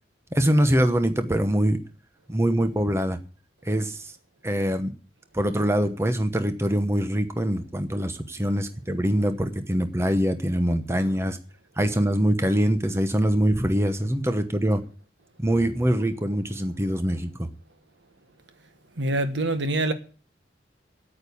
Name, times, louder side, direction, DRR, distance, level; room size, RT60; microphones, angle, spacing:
voice 1, 0.3-1.8 2.3-3.2 3.6-4.1 4.4-4.9 5.3-11.4 11.8-14.8 15.4-17.5, equal, 15° right, 0.9 m, -23 dB
voice 2, 19.0-19.9, right 1 dB, 85° right, 1.3 m, -25 dB
8.9 x 8.9 x 8.4 m
head